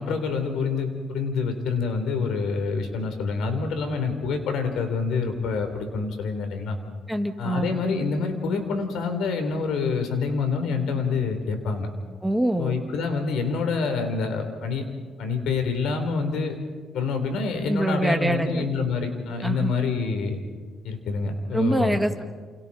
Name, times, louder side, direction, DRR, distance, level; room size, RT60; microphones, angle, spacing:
voice 1, 0.0-6.8 7.4-11.9 12.6-14.9 15.2-16.6 16.9-20.4 20.8-22.0, left 4 dB, 85° left, 6 dB, 3.7 m, -27 dB
voice 2, 7.1-7.7 12.2-12.8 17.7-18.7 19.4-19.7 21.5-22.2, right 1 dB, 5° right, 5 dB, 2.1 m, -24 dB
29.0 x 28.5 x 4.3 m, 1.5 s
cardioid pair, 90°, 0 cm